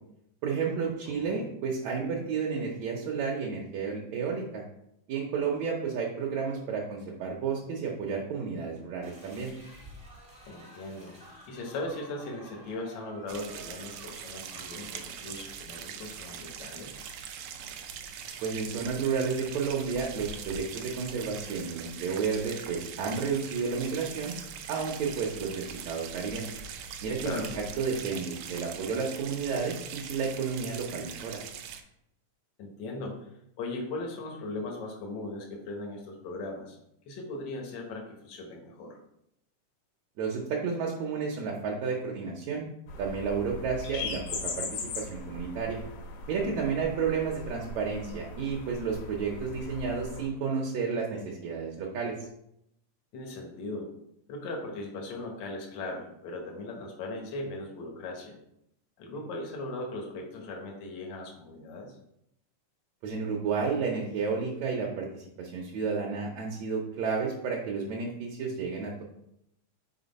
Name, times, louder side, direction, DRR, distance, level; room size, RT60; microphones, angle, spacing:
voice 1, 0.4-4.6 5.1-9.5 18.4-24.3 24.7-26.5 27.0-31.4 40.2-42.7 43.0-45.8 46.3-52.2 63.0-69.0, right 5 dB, 70° right, -2 dB, 1.8 m, -31 dB
voice 2, 1.1-1.4 10.4-11.2 11.4-17.0 27.2-27.5 32.6-33.3 33.6-36.8 37.0-39.0 46.3-46.7 53.1-53.9 54.3-58.3 59.0-61.9, left 2 dB, 75° left, 1 dB, 1.0 m, -38 dB
sound 1, 9.0-15.0, right 1 dB, 30° right, 0.7 m, -51 dB
sound 2, 13.3-31.8, right 7 dB, 90° right, 1.5 m, -42 dB
sound 3, 42.9-50.3, left 3 dB, 90° left, 2.7 m, -39 dB
5.7 x 4.3 x 4.0 m, 0.79 s
omnidirectional pair, 3.6 m